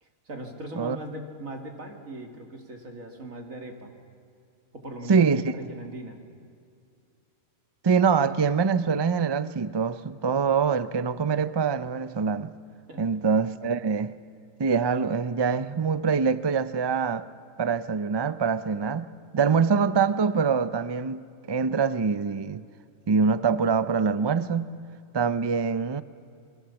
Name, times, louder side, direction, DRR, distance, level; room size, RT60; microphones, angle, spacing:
voice 1, 0.0-3.9 4.7-5.3 5.5-6.2 12.9-13.0, right 1 dB, 80° right, 2.8 m, -39 dB
voice 2, 5.1-5.4 7.8-12.5 13.0-14.1 14.6-17.3 17.6-21.2 21.5-22.6 23.1-24.8 25.1-26.0, right 5 dB, 45° right, 0.3 m, -24 dB
27.0 x 23.0 x 7.1 m
omnidirectional pair, 1.4 m